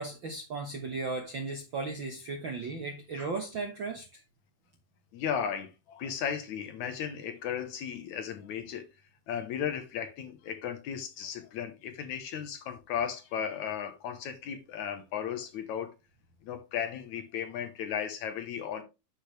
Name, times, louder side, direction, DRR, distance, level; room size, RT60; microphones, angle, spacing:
voice 1, 0.0-4.2, right 3 dB, 60° right, 1.2 m, -36 dB
voice 2, 5.1-8.9 9.3-15.9 16.4-18.8, left 8 dB, 65° left, 2.1 m, -35 dB
10.0 x 6.6 x 3.2 m
omnidirectional pair, 4.0 m